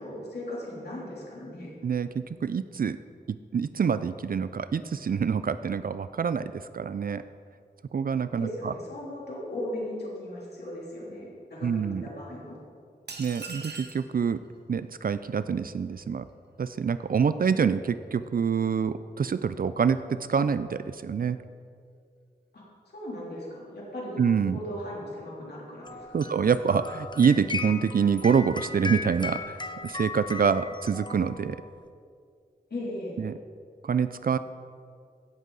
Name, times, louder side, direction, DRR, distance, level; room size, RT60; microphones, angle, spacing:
voice 1, 0.0-1.7 8.4-12.6 22.5-26.4 32.7-33.2, left 1 dB, 75° left, -6 dB, 3.1 m, -37 dB
voice 2, 1.8-3.0 3.5-7.2 7.9-8.7 11.6-12.0 13.2-14.4 14.7-16.2 16.6-21.4 24.2-24.6 26.1-31.6 33.2-33.3 33.8-34.4, right 6 dB, 60° right, 13 dB, 0.4 m, -26 dB
sound 1, 13.1-14.1, right 4 dB, 80° right, 1.1 m, -40 dB
sound 2, 25.8-31.7, left 4 dB, 30° left, 0.7 m, -37 dB
16.5 x 8.2 x 4.0 m, 2.2 s
wide cardioid pair, 80°, 17 cm